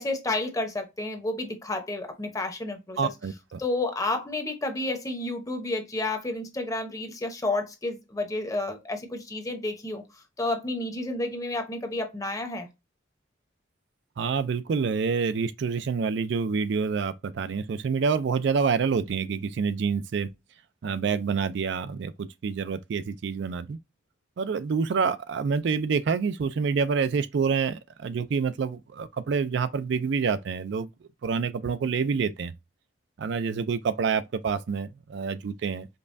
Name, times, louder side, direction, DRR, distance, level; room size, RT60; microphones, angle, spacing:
voice 1, 0.0-3.1 3.6-10.0 10.4-12.7, left 2 dB, 20° left, 0.8 m, -30 dB
voice 2, 3.0-3.6 14.2-20.3 20.8-23.8 24.4-30.9 31.2-32.5 33.2-35.9, right 5 dB, 65° right, 0.4 m, -27 dB
5.3 x 2.2 x 2.5 m
head